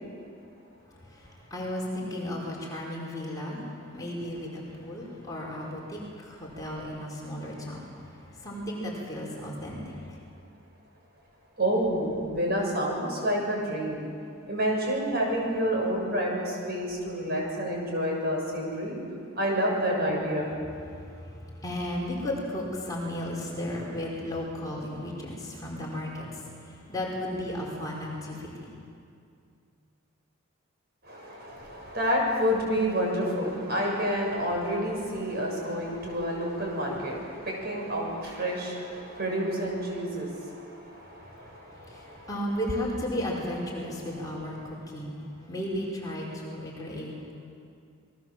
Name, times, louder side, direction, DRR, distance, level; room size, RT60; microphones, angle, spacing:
voice 1, 0.9-10.2 20.8-28.7 41.2-47.3, left 1 dB, 15° left, -4 dB, 5.0 m, -35 dB
voice 2, 11.6-14.1 14.5-18.9 19.4-20.5 31.1-42.3, equal, 50° right, -1 dB, 7.3 m, -29 dB
29.0 x 21.5 x 7.6 m, 2.4 s
head